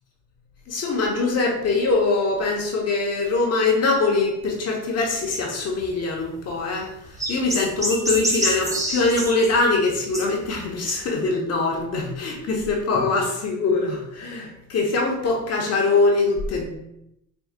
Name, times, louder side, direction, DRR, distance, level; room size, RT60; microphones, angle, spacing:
voice 1, 0.7-6.9 7.3-16.8, left 3 dB, 55° left, 0 dB, 1.1 m, -23 dB
sound 1, 5.6-5.9 6.5-6.6 6.8-6.9 7.1-9.5 10.1-10.6 10.9-11.0, right 1 dB, 10° right, 0.9 m, -27 dB
4.5 x 3.3 x 2.4 m, 0.81 s
cardioid pair, 90°, 30 cm